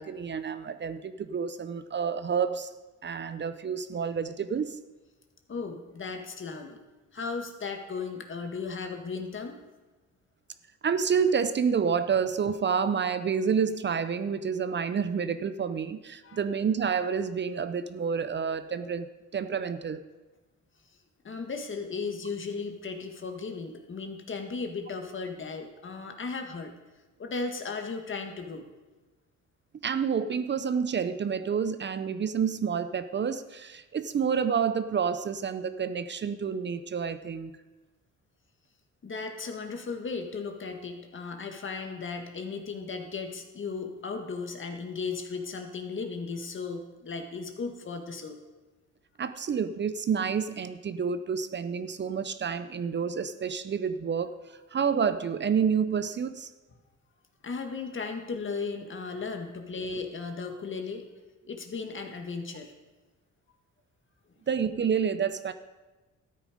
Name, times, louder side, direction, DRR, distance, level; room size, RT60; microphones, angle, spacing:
voice 1, 0.0-2.7 3.0-4.8 10.8-19.1 19.3-20.0 29.8-37.5 49.2-54.4 54.7-56.5 64.5-65.5, right 6 dB, 35° right, 12 dB, 0.6 m, -29 dB
voice 2, 5.5-6.8 7.1-9.6 16.2-16.4 21.2-26.7 27.2-28.6 39.0-48.4 57.4-61.1 61.5-62.7, left 4 dB, 40° left, 5 dB, 1.7 m, -36 dB
13.0 x 8.9 x 5.0 m, 1.2 s
cardioid pair, 90°, 30 cm